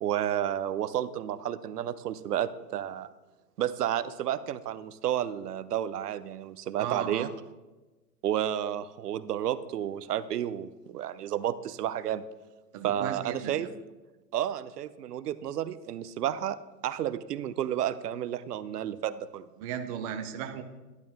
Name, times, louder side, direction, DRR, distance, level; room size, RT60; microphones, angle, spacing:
voice 1, 0.0-3.1 3.6-7.3 8.2-12.2 12.8-13.7 14.3-19.5, right 11 dB, 70° right, 13 dB, 0.8 m, -31 dB
voice 2, 6.8-7.3 12.7-13.7 19.6-20.6, right 9 dB, 25° right, 7 dB, 0.5 m, -35 dB
11.5 x 11.0 x 3.6 m, 1.2 s
hypercardioid pair, 125°, 49 cm